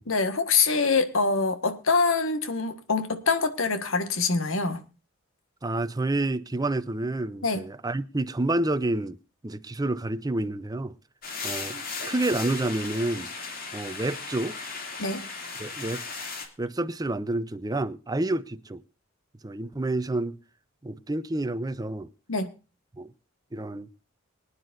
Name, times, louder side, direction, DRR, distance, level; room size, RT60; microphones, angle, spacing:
voice 1, 0.1-4.8 7.4-7.6 15.0-15.3 22.3-22.5, left 4 dB, 75° left, 1.6 m, -25 dB
voice 2, 5.6-9.2 9.4-10.9 11.4-11.8 12.1-13.3 13.7-14.6 15.6-16.0 16.6-18.8 19.4-20.4 20.8-22.1 23.0-23.1 23.5-23.9, right 2 dB, 20° right, 0.6 m, -29 dB
sound 1, 11.2-16.5, left 4 dB, 45° left, 2.5 m, -36 dB
23.5 x 9.8 x 2.6 m
head